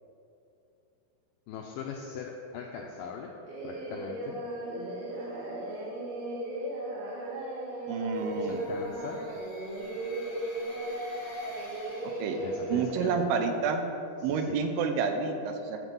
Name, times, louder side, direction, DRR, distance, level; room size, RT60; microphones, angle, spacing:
voice 1, 1.5-3.3 3.6-4.4 8.3-9.2 12.4-13.2 14.2-14.6, left 6 dB, 85° left, 1 dB, 1.9 m, -40 dB
Singing, 3.5-12.9, right 1 dB, 65° right, 2.9 m, -36 dB
voice 2, 7.9-8.6 12.2-12.4 12.7-13.8 14.2-15.8, right 5 dB, 80° right, 5 dB, 2.3 m, -29 dB
sound 1, 8.1-13.2, left 1 dB, 50° left, 0.6 m, -51 dB
12.0 x 4.5 x 5.3 m, 2.8 s
omnidirectional pair, 4.4 m